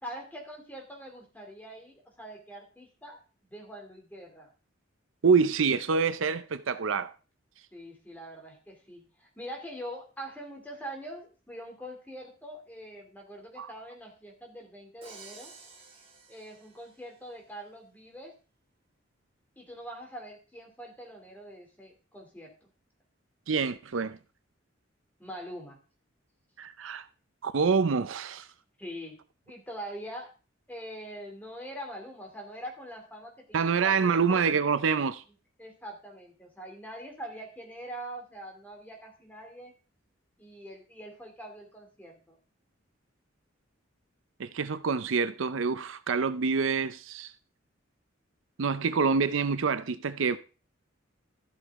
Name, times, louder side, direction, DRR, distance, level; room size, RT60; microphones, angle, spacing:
voice 1, 0.0-4.5 7.7-15.5 16.3-18.3 19.6-22.7 25.2-25.8 28.8-29.2 29.5-30.3 30.7-34.4 35.6-39.7 40.4-42.4, equal, 10° left, 2.8 m, -43 dB
voice 2, 5.2-7.1 13.6-13.7 23.5-24.2 26.6-27.0 27.4-28.5 33.5-35.2 44.4-47.3 48.6-50.4, right 5 dB, 75° right, 0.6 m, -26 dB
Crash cymbal, 15.0-17.2, right 4 dB, 30° right, 1.9 m, -51 dB
13.0 x 8.1 x 3.6 m
head